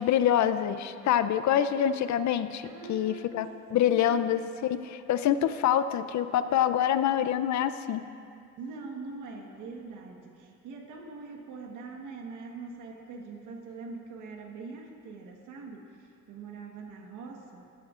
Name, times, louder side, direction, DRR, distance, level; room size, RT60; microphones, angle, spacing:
voice 1, 0.0-3.5 3.7-8.0, left 10 dB, 65° left, 12 dB, 0.6 m, -26 dB
voice 2, 2.6-4.3 8.6-17.7, right 4 dB, 90° right, 2 dB, 1.4 m, -43 dB
16.0 x 12.0 x 2.5 m, 2.5 s
cardioid pair, 90°, 30 cm